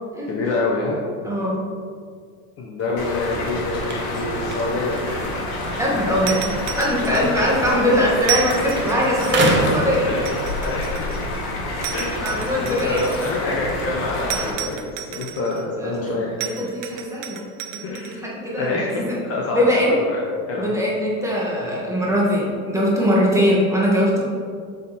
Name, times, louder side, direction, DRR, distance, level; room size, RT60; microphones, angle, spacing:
voice 1, 0.3-1.0 2.6-5.0 7.1-7.5 9.2-9.3 10.1-11.2 11.9-16.4 17.8-18.3 18.6-20.2 20.5-20.8 21.6-21.7, left 2 dB, 30° left, -3 dB, 0.9 m, -27 dB
voice 2, 1.2-1.6 5.8-6.5 6.8-10.1 11.7-11.9 12.2-13.1 15.8-16.1 16.4-17.5 17.7-19.2 19.5-20.0 20.6-24.2, equal, 5° right, -5 dB, 1.5 m, -21 dB
sound 1, 2.8-8.4 8.7-10.7 11.2-14.3, right 2 dB, 25° right, 0.8 m, -30 dB
sound 2, 3.0-14.5, left 2 dB, 60° left, 1.5 m, -28 dB
sound 3, 6.3-7.6 8.2-9.6 10.2-11.4 11.8-13.4 14.3-15.6 16.4-18.2, right 11 dB, 60° right, 0.7 m, -32 dB
6.5 x 3.8 x 4.2 m, 2.1 s
supercardioid pair, 110°, 43 cm